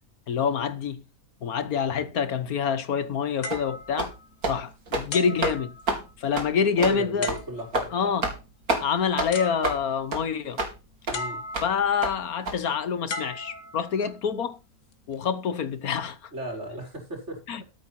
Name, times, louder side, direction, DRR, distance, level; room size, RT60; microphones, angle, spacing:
voice 1, 0.3-1.0 1.4-4.1 4.5-5.7 6.2-7.3 7.9-8.3 8.8-10.6 11.6-14.6 15.1-16.3 17.5-17.6, left 7 dB, 75° left, 1.6 m, -26 dB
sound 1, 3.4-4.6 5.1-6.3 7.2-7.9 9.0-9.1 9.3-10.1 11.1-11.9 13.1-14.2 14.9-15.2, left 3 dB, 60° left, 1.9 m, -37 dB
sound 2, 3.5-3.6 4.0-4.1 4.4-4.6 4.9-5.1 5.4-5.6 5.9-6.0 6.4-6.5 6.8-7.0 7.3-7.4 7.7-7.9 8.2-8.4 8.7-8.8 9.2-9.3 9.6-9.8 10.1-10.2 10.6-10.7 11.1-11.2 11.5-11.7 12.0-12.1 12.5-12.6, right 2 dB, 75° right, 3.3 m, -27 dB
voice 2, 6.8-7.9 11.1-11.4 16.3-17.4, right 1 dB, 50° right, 5.3 m, -34 dB
13.5 x 8.4 x 4.3 m
omnidirectional pair, 1.6 m